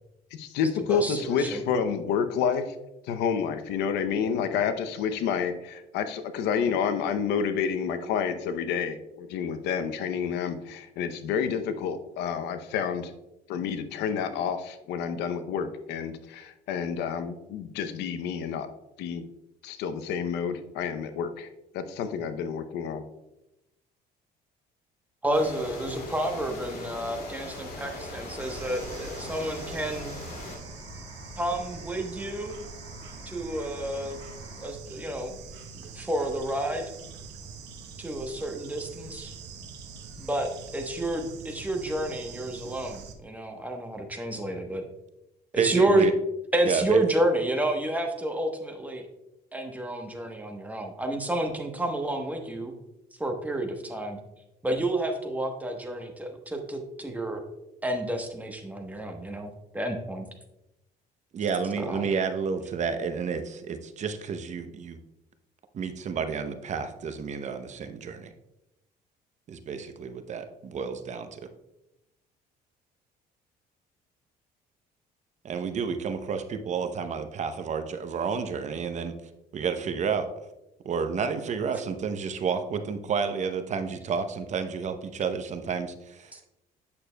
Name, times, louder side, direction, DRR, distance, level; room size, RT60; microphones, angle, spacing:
voice 1, 0.3-2.8 3.0-13.1 13.5-18.7 19.0-19.2 19.6-21.5 21.7-23.0, left 7 dB, 85° left, 10 dB, 0.6 m, -29 dB
voice 2, 0.9-1.6 25.2-30.2 31.4-32.6 33.3-34.2 34.6-35.3 35.7-36.8 38.0-39.3 40.2-40.5 40.7-44.8 45.5-46.0 46.5-49.1 49.5-52.7 53.2-54.2 54.6-57.4 57.8-60.3 61.8-62.1 86.3-86.4, right 1 dB, 10° right, 3 dB, 1.0 m, -30 dB
sound 1, 25.3-30.6, left 1 dB, 65° left, 2.3 m, -40 dB
sound 2, 27.8-34.7, left 1 dB, 40° left, 2.4 m, -47 dB
Bird / Insect, 28.4-43.1, right 5 dB, 85° right, 0.9 m, -44 dB
voice 3, 45.5-46.1 46.7-47.0 61.3-65.0 65.7-68.3 69.5-71.5 75.4-79.1 79.5-80.3 80.8-86.5, right 6 dB, 45° right, 8 dB, 0.7 m, -30 dB
8.5 x 6.5 x 2.2 m, 0.90 s
cardioid pair, 110°, 17 cm